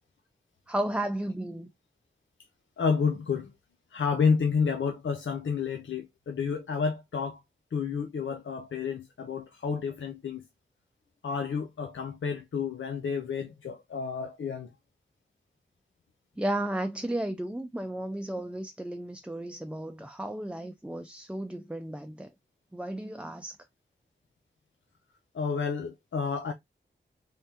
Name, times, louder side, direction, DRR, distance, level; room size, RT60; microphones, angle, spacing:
voice 1, 0.7-1.7 16.4-22.3 22.7-23.5, right 1 dB, 5° right, 0.4 m, -33 dB
voice 2, 2.8-3.5 3.9-7.4 7.7-10.4 11.2-14.7 25.3-26.5, left 5 dB, 90° left, 0.5 m, -30 dB
3.6 x 3.4 x 2.7 m
wide cardioid pair, 85°, 19 cm